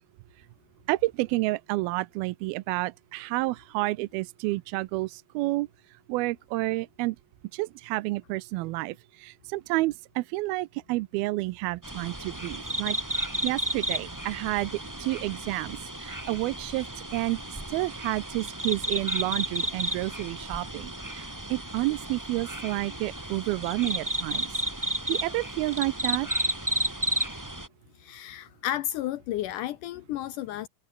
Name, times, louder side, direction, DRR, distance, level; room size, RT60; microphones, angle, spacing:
voice 1, 0.9-5.7 6.1-7.2 7.5-14.7 15.0-24.5 25.1-26.3, right 20 dB, 80° right, 2.4 m, -30 dB
sound 1, 11.8-27.7, right 1 dB, 10° right, 1.3 m, -33 dB
voice 2, 28.0-30.7, left 13 dB, 80° left, 1.9 m, -32 dB
omnidirectional pair, 4.5 m